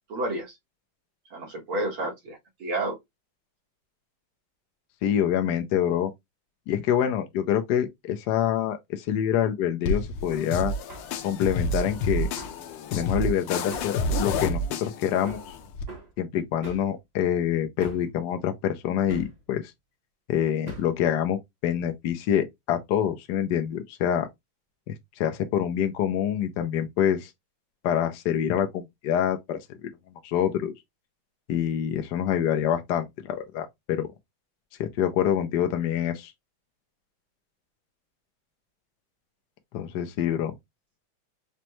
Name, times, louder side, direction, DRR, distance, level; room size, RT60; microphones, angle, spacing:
voice 1, 0.1-0.5 1.3-3.0, right 1 dB, 75° right, 2.3 m, -30 dB
voice 2, 5.0-6.1 6.7-10.7 11.2-12.3 12.9-15.4 16.2-19.6 20.3-24.3 24.9-27.3 27.8-29.9 30.2-30.7 31.5-34.1 34.8-36.3 39.7-40.5, left 9 dB, 70° left, 1.0 m, -26 dB
sound 1, 9.8-15.8, left 1 dB, 85° left, 1.5 m, -29 dB
Hammer, 10.3-10.5 10.9-11.1 12.4-12.6 13.7-14.0 15.3-15.5 15.9-16.1 16.6-16.9 17.8-18.1 19.1-19.4 20.7-21.0, right 2 dB, 55° right, 0.4 m, -42 dB
5.1 x 2.2 x 3.0 m
omnidirectional pair, 2.3 m